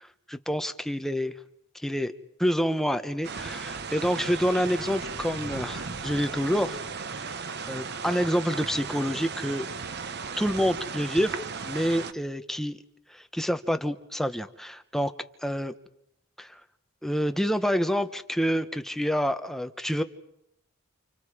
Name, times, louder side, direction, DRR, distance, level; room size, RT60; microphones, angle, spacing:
voice 1, 0.3-1.3 1.8-2.1 2.4-6.8 7.2-7.4 7.7-9.7 10.4-11.4 11.7-12.8 13.1-15.1 15.4-15.7 16.4-16.6 17.0-20.0, equal, ahead, 9 dB, 0.9 m, -27 dB
sound 1, 3.2-12.1, right 5 dB, 55° right, 1.0 m, -36 dB
30.0 x 27.0 x 4.9 m, 0.78 s
head